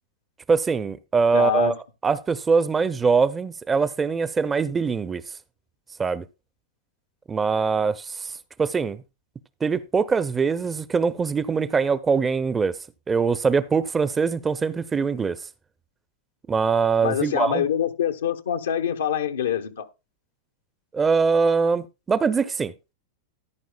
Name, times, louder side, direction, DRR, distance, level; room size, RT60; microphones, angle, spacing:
voice 1, 0.5-1.7 2.0-5.2 6.0-6.3 7.3-8.3 8.6-9.0 9.6-12.7 13.1-15.4 16.5-17.7 20.9-22.7, right 5 dB, 15° right, 0.5 m, -22 dB
voice 2, 1.3-1.8 17.0-19.9, left 9 dB, 90° left, 0.9 m, -25 dB
14.0 x 10.5 x 2.2 m
hypercardioid pair, 120°, 0 cm